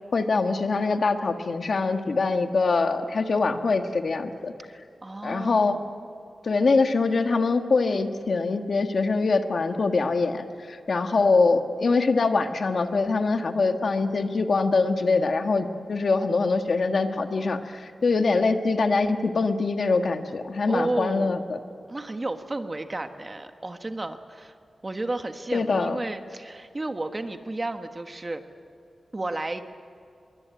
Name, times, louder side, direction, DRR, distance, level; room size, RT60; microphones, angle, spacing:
voice 1, 0.1-4.5 5.2-5.8 6.4-21.6 25.5-26.0, left 3 dB, 55° left, 7 dB, 1.5 m, -23 dB
voice 2, 5.0-5.8 20.7-21.4 21.9-24.5 24.8-28.4 29.1-29.7, right 2 dB, 25° right, 7 dB, 1.4 m, -32 dB
25.0 x 23.0 x 9.3 m, 2.5 s
wide cardioid pair, 140°, 0 cm